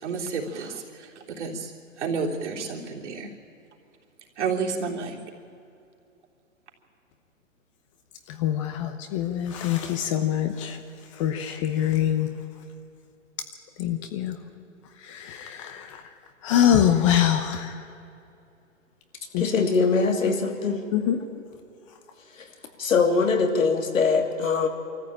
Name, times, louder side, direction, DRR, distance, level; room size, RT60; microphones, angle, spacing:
voice 1, 0.0-1.7 2.0-3.3 4.4-5.2, right 5 dB, 60° right, -1 dB, 3.5 m, -30 dB
voice 2, 8.3-10.8 11.1-12.3 13.8-14.4 15.0-16.0 16.4-17.9 19.3-19.4 20.9-21.2, left 10 dB, 25° left, 8 dB, 0.8 m, -24 dB
voice 3, 19.4-20.8 22.4-22.5 22.8-24.7, left 4 dB, 85° left, 5 dB, 2.8 m, -22 dB
23.0 x 14.5 x 8.9 m, 2.6 s
hypercardioid pair, 150°, 39 cm